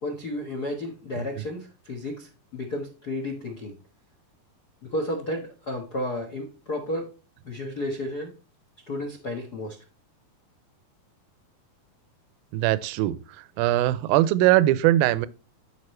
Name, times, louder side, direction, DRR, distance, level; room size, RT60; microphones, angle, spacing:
voice 1, 0.0-3.7 4.8-7.1 7.4-8.3 8.9-9.8, left 1 dB, 80° left, 0.8 m, -32 dB
voice 2, 12.5-13.2 13.6-15.3, right 15 dB, 80° right, 2.3 m, -21 dB
13.5 x 5.2 x 3.2 m
omnidirectional pair, 4.3 m